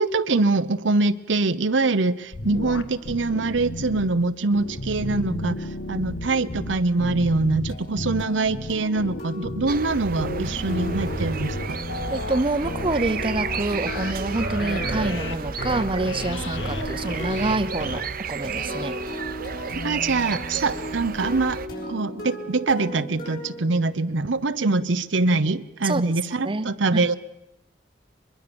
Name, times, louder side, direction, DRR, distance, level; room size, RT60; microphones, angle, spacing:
voice 1, 0.0-5.5 5.9-11.8 19.8-21.6 21.9-27.2, right 3 dB, 85° right, 11 dB, 0.9 m, -24 dB
sound 1, 2.3-4.1 4.5-18.0, left 2 dB, 80° left, 1.6 m, -33 dB
sound 2, 7.7-24.4, equal, 55° left, 6.8 m, -37 dB
sound 3, 9.7-21.7, right 5 dB, 55° right, 0.9 m, -32 dB
voice 2, 12.1-19.0 25.8-26.2 26.4-27.0, right 2 dB, 30° right, 11 dB, 0.8 m, -27 dB
22.5 x 22.5 x 7.0 m, 0.89 s
head